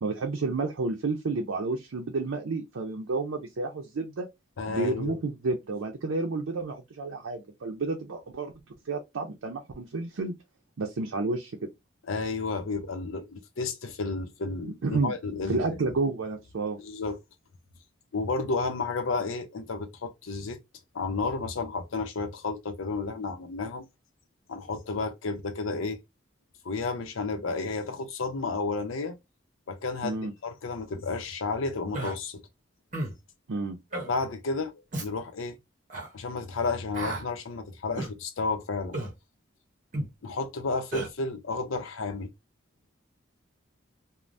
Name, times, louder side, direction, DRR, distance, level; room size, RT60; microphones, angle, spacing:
voice 1, 0.0-4.3 4.7-8.5 8.9-10.3 10.8-11.5 14.6-15.2 15.5-16.8 30.0-30.3 33.5-33.8, right 3 dB, 90° right, 0.5 m, -30 dB
voice 2, 4.6-5.2 12.1-15.8 16.8-17.2 18.1-20.6 20.9-23.9 24.5-26.0 26.6-29.2 29.7-32.4 34.1-34.7 35.0-35.6 36.1-39.0 40.2-42.3, left 3 dB, 90° left, 0.6 m, -32 dB
Human voice, 31.9-32.2 32.9-33.2 33.9-34.1 34.9-35.1 35.9-36.1 36.9-37.2 38.0-38.1 38.9-39.1 39.9-40.1 40.9-41.1, right 1 dB, 40° right, 0.8 m, -33 dB
3.2 x 2.1 x 2.5 m
head